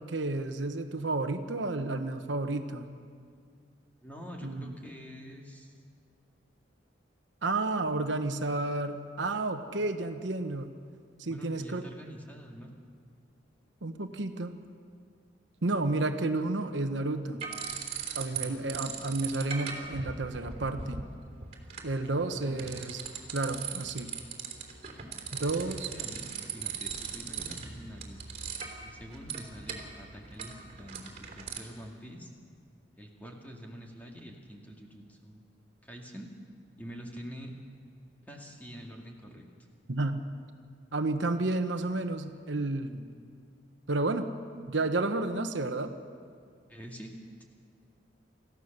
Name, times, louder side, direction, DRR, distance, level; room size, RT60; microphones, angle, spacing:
voice 1, 0.0-2.9 4.4-4.7 7.4-10.7 11.2-11.8 13.8-14.5 15.6-17.4 18.1-21.1 21.8-23.0 23.3-24.1 25.3-25.9 39.9-40.2 40.9-43.0 43.9-44.3 44.7-45.9, right 2 dB, 70° right, 7 dB, 1.1 m, -31 dB
voice 2, 4.0-5.8 11.3-12.7 18.2-18.7 22.1-23.0 25.3-28.3 28.8-32.3 33.0-35.4 35.8-36.3 36.8-37.5 38.3-39.5 46.7-47.4, equal, 10° left, 0 dB, 2.2 m, -46 dB
sound 1, 17.4-18.4 18.7-31.6, right 6 dB, 35° right, 3.3 m, -40 dB
27.0 x 15.0 x 6.7 m, 2.1 s
head